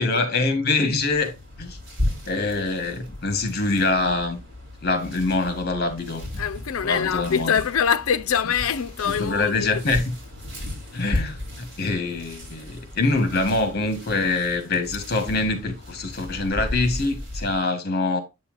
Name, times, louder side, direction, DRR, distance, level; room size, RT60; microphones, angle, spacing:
voice 1, 0.0-1.3 1.6-1.8 2.3-4.4 4.8-6.3 6.8-7.5 9.1-10.0 10.9-18.2, left 3 dB, 45° left, 1.3 m, -24 dB
sound 1, 1.0-17.6, left 1 dB, 55° right, 3.7 m, -35 dB
voice 2, 6.4-9.8, left 7 dB, 70° left, 0.5 m, -24 dB
7.9 x 5.6 x 2.5 m
head